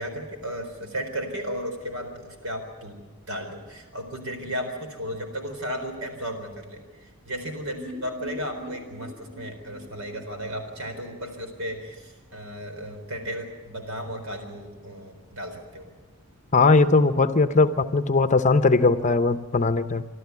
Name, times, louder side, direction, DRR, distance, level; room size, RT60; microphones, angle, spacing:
voice 1, 0.0-3.0 3.3-15.9, equal, 75° right, 4.2 m, -34 dB
sound 1, 7.8-11.6 11.9-12.0 12.3-12.4, left 1 dB, 5° left, 3.0 m, -42 dB
voice 2, 16.5-20.0, left 3 dB, 35° left, 0.7 m, -19 dB
26.0 x 12.5 x 9.5 m
head